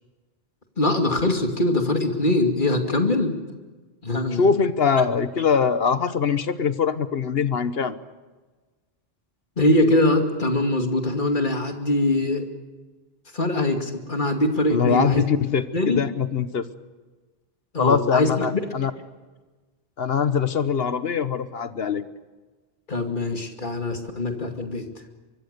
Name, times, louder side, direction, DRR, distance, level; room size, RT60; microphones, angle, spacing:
voice 1, 0.8-3.3 4.0-4.4 9.6-12.5 13.3-15.3 15.7-16.0 17.7-18.5 22.9-24.9, left 1 dB, 50° left, 4 dB, 2.7 m, -22 dB
voice 2, 4.4-8.0 14.7-16.6 17.8-18.9 20.0-22.0, left 6 dB, 70° left, 12 dB, 1.3 m, -22 dB
24.0 x 24.0 x 6.8 m, 1.3 s
omnidirectional pair, 1.0 m